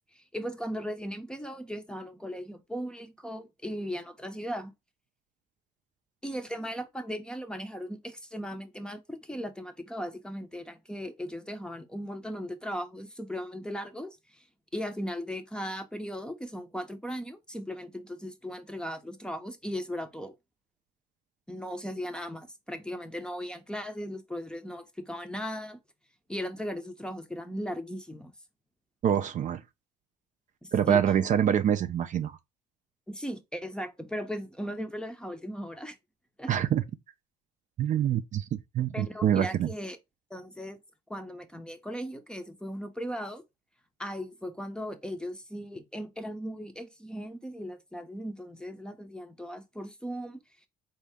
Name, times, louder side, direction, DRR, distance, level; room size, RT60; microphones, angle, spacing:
voice 1, 0.1-4.7 6.2-14.4 14.7-20.3 21.5-25.8 26.3-28.3 30.6-31.0 33.1-36.0 36.4-36.6 38.9-40.0 40.3-40.8 41.1-43.4 44.0-50.4, equal, 5° left, 0.6 m, -37 dB
voice 2, 29.0-29.6 30.7-32.4 36.5-36.8 37.8-39.7, right 9 dB, 50° right, 0.5 m, -25 dB
4.1 x 2.8 x 3.4 m
cardioid pair, 110°, 17 cm